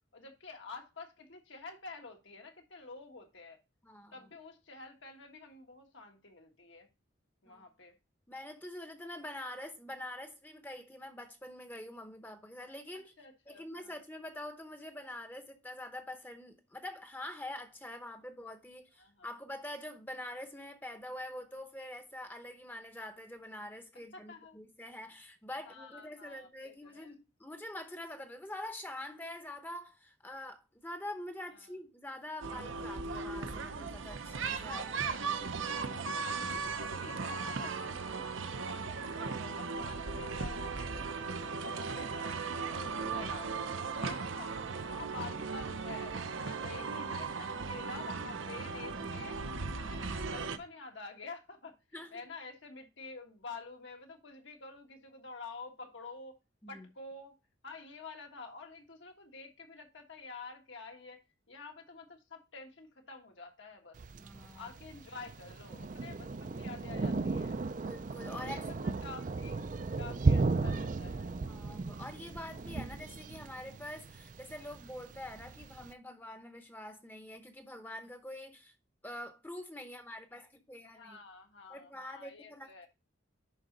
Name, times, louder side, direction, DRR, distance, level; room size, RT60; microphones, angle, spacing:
voice 1, 0.1-3.6 4.1-6.9 7.4-8.0 13.2-13.9 19.0-19.3 23.9-24.6 25.6-27.1 31.5-31.8 34.7-36.1 36.4-39.3 39.5-42.3 42.6-43.6 43.9-44.6 44.9-46.1 46.4-49.4 49.7-56.4 56.7-57.4 57.6-61.2 61.5-64.0 64.5-67.6 68.4-69.6 70.0-71.4 80.8-82.9, left 3 dB, 70° left, 1.6 m, -49 dB
voice 2, 3.8-4.1 7.5-7.6 8.3-13.1 13.5-34.9 36.3-36.6 39.2-39.6 44.0-44.1 51.9-52.1 56.6-56.9 64.2-64.7 67.8-68.6 69.1-69.2 71.5-78.7 79.0-81.2 81.7-82.9, left 1 dB, 10° left, 0.8 m, -45 dB
sound 1, 32.4-50.6, right 4 dB, 80° right, 0.8 m, -37 dB
Thunder, 64.0-75.9, right 3 dB, 40° right, 0.4 m, -35 dB
10.5 x 4.1 x 3.9 m
head